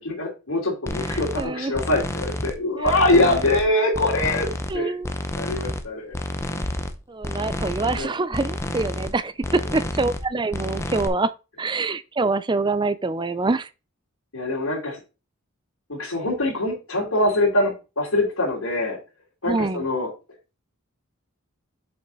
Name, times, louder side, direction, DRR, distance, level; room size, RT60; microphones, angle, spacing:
voice 1, 0.0-4.5 4.7-5.0 5.3-6.2 8.0-8.1 9.5-9.6 14.3-15.0 15.9-19.0 19.4-20.1, left 2 dB, 85° left, 3.4 m, -23 dB
sound 1, 0.9-1.4 1.7-2.6 2.8-3.7 3.9-4.8 5.0-5.8 6.1-7.0 7.2-8.0 8.3-9.1 9.4-10.2 10.5-11.1, left 1 dB, 15° left, 0.7 m, -29 dB
voice 2, 1.0-1.8 3.1-3.4 4.7-5.1 7.1-11.3 11.6-13.7 19.4-19.8, right 3 dB, 20° right, 0.4 m, -25 dB
7.8 x 5.5 x 4.0 m
head